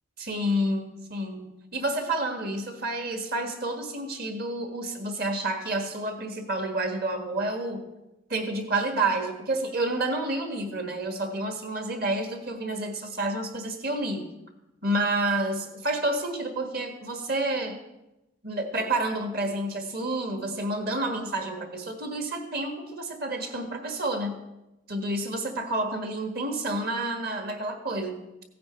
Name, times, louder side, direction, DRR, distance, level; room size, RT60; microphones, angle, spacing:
voice 1, 0.2-7.8 8.3-14.3 14.8-17.8 18.4-24.4 24.9-28.2, right 2 dB, 50° right, 5 dB, 1.6 m, -29 dB
16.0 x 9.3 x 4.4 m, 0.96 s
head